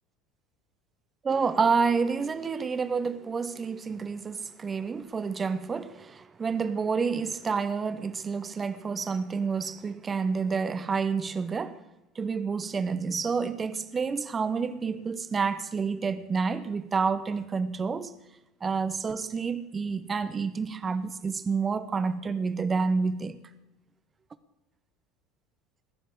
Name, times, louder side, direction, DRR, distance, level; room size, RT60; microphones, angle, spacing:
voice 1, 1.2-11.8 12.1-18.1 18.6-23.4, right 5 dB, 30° right, 0.9 m, -29 dB
20.0 x 7.7 x 7.9 m
hypercardioid pair, 70°, 0 cm